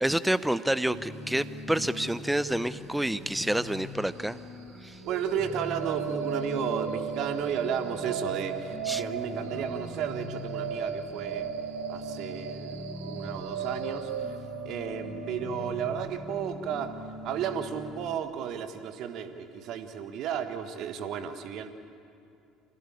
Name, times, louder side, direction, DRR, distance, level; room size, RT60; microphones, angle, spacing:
voice 1, 0.0-4.4 4.8-5.0 8.8-9.0 9.5-9.6, right 1 dB, 5° right, 15 dB, 0.7 m, -28 dB
sound 1, 0.9-18.2, left 2 dB, 50° left, 2.4 m, -42 dB
voice 2, 5.0-11.5 11.9-14.1 14.6-17.0 17.2-21.7, right 8 dB, 50° right, 9 dB, 1.5 m, -33 dB
sound 2, 5.0-19.0, right 7 dB, 70° right, 0.9 m, -37 dB
26.0 x 17.0 x 8.7 m, 2.5 s
figure-of-eight pair, 55°, 0 cm